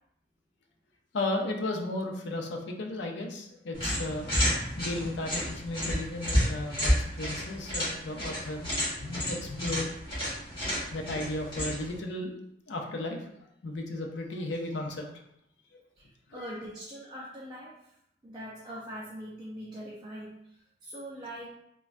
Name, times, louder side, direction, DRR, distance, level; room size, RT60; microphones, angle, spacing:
voice 1, 1.1-4.3 4.8-8.7 9.0-9.9 10.9-12.3 12.7-13.2 13.6-15.0 16.4-16.6, left 2 dB, 70° left, 2 dB, 0.5 m, -34 dB
sound 1, 3.7-12.0, equal, 30° left, 1.3 m, -31 dB
voice 2, 16.0-17.7 18.2-20.4 20.8-21.5, equal, 25° right, -5 dB, 0.4 m, -42 dB
3.3 x 2.1 x 2.5 m, 0.77 s
head